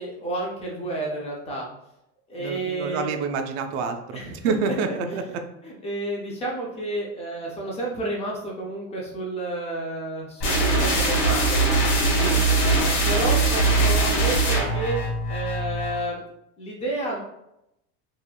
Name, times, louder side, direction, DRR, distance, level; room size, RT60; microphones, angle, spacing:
voice 1, 0.0-1.7 2.3-3.1 4.1-4.7 5.1-5.3 5.6-11.6 12.4-15.0 15.3-16.2 16.6-17.2, right 2 dB, 20° left, -2 dB, 0.3 m, -31 dB
voice 2, 2.4-5.2 12.2-12.4, right 5 dB, 75° right, 6 dB, 0.5 m, -28 dB
sound 1, 10.4-16.0, right 2 dB, 85° left, 1.2 m, -21 dB
2.9 x 2.4 x 2.2 m, 0.84 s
cardioid pair, 155°, 33 cm